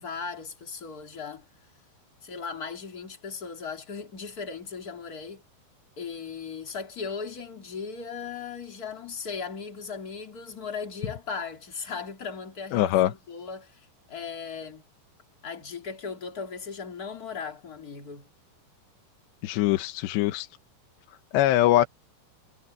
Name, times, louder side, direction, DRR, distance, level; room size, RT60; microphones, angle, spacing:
voice 1, 0.0-1.4 2.2-5.4 6.0-14.8 15.4-18.3, left 5 dB, 25° left, 2.4 m, -37 dB
voice 2, 12.7-13.1 19.4-20.5 21.3-21.9, left 14 dB, 90° left, 3.2 m, -22 dB
omnidirectional pair, 4.9 m